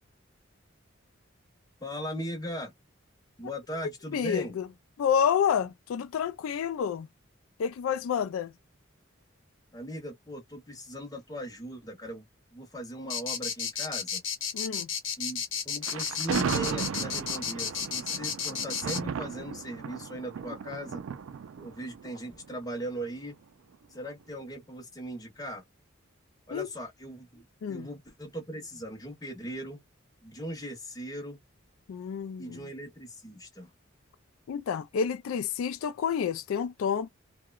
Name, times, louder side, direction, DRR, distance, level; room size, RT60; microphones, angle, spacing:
voice 1, 1.8-2.7 3.4-4.6 9.7-12.2 12.5-14.2 15.2-21.0 21.6-23.4 23.9-25.6 26.5-29.8 30.2-31.4 32.4-33.7, equal, 20° left, 0.8 m, -39 dB
voice 2, 4.1-4.7 5.0-7.1 7.6-8.5 14.5-14.9 26.5-26.7 27.6-27.9 31.9-32.6 34.5-37.1, left 7 dB, 80° left, 0.3 m, -29 dB
sound 1, 13.1-19.0, left 7 dB, 65° left, 0.9 m, -32 dB
Thunder, 15.8-23.0, right 6 dB, 75° right, 0.4 m, -35 dB
2.8 x 2.2 x 2.2 m
head